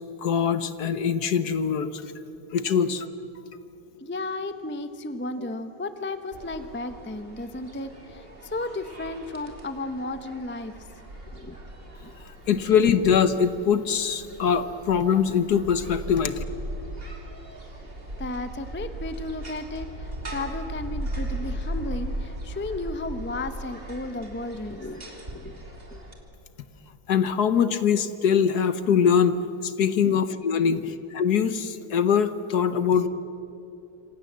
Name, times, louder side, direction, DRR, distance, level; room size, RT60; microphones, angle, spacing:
voice 1, 0.2-2.1 2.5-3.1 12.5-16.4 27.1-29.4 29.6-30.8 31.1-33.1, left 7 dB, 60° left, 12 dB, 1.4 m, -22 dB
voice 2, 4.0-10.7 11.3-11.6 12.0-12.1 18.2-25.0 25.3-25.6 25.9-26.0 30.0-30.3 30.6-30.9, left 2 dB, 10° left, 9 dB, 0.7 m, -34 dB
sound 1, 6.3-26.1, right 1 dB, 30° right, 3.1 m, -38 dB
27.0 x 26.5 x 7.6 m, 3.0 s
omnidirectional pair, 2.1 m